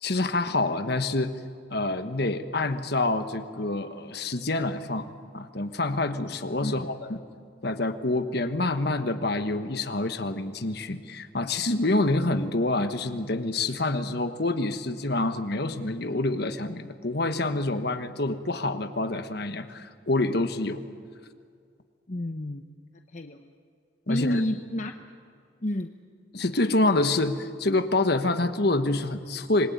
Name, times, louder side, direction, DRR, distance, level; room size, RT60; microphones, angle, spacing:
voice 1, 0.0-1.3 1.7-5.1 5.3-7.2 7.6-20.8 24.1-24.4 26.3-29.7, left 2 dB, 55° left, 9 dB, 1.4 m, -27 dB
voice 2, 22.1-22.6 23.1-23.5 24.1-24.9 25.6-25.9, left 1 dB, 40° left, 6 dB, 0.9 m, -29 dB
26.0 x 21.0 x 9.5 m, 2.2 s
head